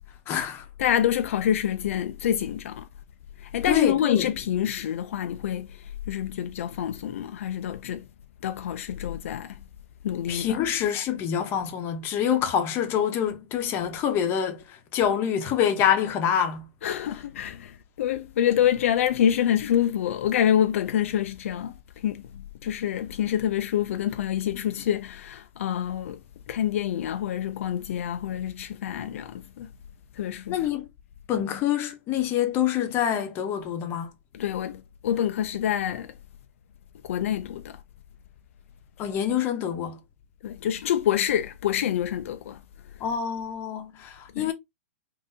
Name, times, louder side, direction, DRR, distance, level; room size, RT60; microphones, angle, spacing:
voice 1, 0.3-0.7 3.6-4.3 10.3-16.7 30.5-30.9 31.3-34.1 39.0-40.0 43.0-44.5, left 9 dB, 30° left, 0.8 m, -26 dB
voice 2, 0.8-2.9 3.4-8.0 8.4-9.6 10.0-10.6 16.8-22.2 22.6-26.2 26.5-29.7 30.2-30.6 34.3-36.1 37.0-37.8 40.4-42.6 44.3-44.5, left 10 dB, 70° left, 0.3 m, -27 dB
3.5 x 2.6 x 2.6 m
hypercardioid pair, 135°, 7 cm